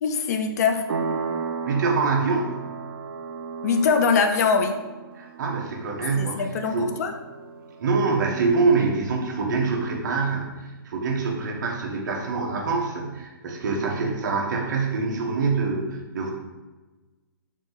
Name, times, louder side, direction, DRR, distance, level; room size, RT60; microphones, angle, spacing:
voice 1, 0.0-0.8 3.6-4.7 6.2-7.1, left 5 dB, 45° left, 6 dB, 0.4 m, -22 dB
sound 1, 0.9-9.2, right 5 dB, 70° right, 0.4 m, -35 dB
voice 2, 1.7-2.6 5.1-7.0 7.8-10.6 10.8-16.3, right 4 dB, 50° right, 0 dB, 1.0 m, -25 dB
4.8 x 2.7 x 3.7 m, 1.2 s
hypercardioid pair, 160°, 12 cm